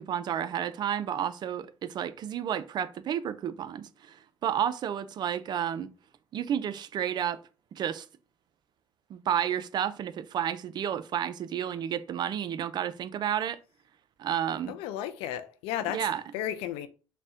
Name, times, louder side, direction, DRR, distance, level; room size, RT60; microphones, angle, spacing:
voice 1, 0.0-5.9 6.3-7.4 7.7-8.1 9.1-13.6 14.2-14.7 15.9-16.2, right 9 dB, 50° right, 0.4 m, -31 dB
voice 2, 14.7-16.1 16.3-16.9, left 11 dB, 85° left, 0.4 m, -33 dB
4.0 x 2.1 x 3.6 m
supercardioid pair, 80°, 9 cm